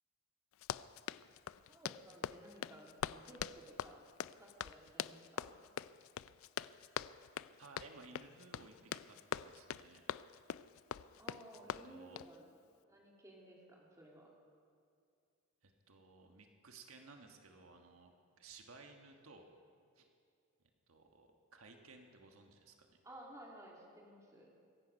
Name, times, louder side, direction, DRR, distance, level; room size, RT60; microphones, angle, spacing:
Run, 0.5-12.4, left 9 dB, 80° left, 0.3 m, -44 dB
voice 1, 1.7-4.0 4.3-5.5 11.2-12.5 12.8-14.3 23.0-24.5, right 1 dB, 15° right, -2 dB, 2.4 m, -56 dB
voice 2, 7.6-10.0 11.6-12.2 15.6-19.5 19.9-20.1 20.9-23.0, right 3 dB, 85° right, 4 dB, 1.4 m, -58 dB
23.5 x 11.0 x 5.3 m, 2.4 s
head